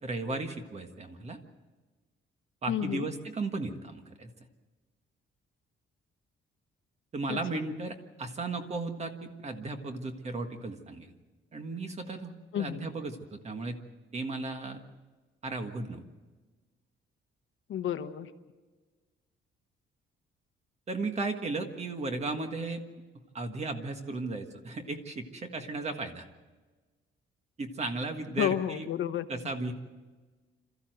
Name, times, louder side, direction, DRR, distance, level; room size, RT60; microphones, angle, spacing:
voice 1, 0.0-1.4 2.6-4.3 7.1-11.1 11.5-13.8 14.1-14.8 15.4-16.0 20.9-22.8 23.3-26.2 27.6-28.9 29.3-29.7, right 3 dB, 30° right, 6 dB, 1.6 m, -35 dB
voice 2, 2.7-3.1 7.3-7.4 12.5-12.9 17.7-18.3 28.4-29.3, left 10 dB, 70° left, 9 dB, 1.1 m, -31 dB
27.0 x 14.0 x 7.9 m, 1.3 s
cardioid pair, 165°, 21 cm